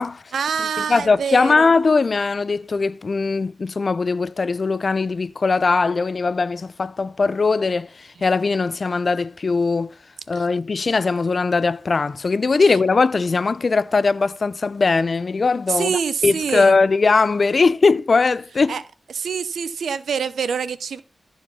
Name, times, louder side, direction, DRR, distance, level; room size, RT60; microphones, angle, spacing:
voice 1, 0.3-1.7 10.3-10.4 15.7-16.8 18.7-18.8 19.1-21.0, right 6 dB, 85° right, 0.8 m, -25 dB
voice 2, 0.9-9.9 10.3-18.7, left 4 dB, 55° left, 0.6 m, -20 dB
14.0 x 4.8 x 5.5 m
cardioid pair, 50°, 0 cm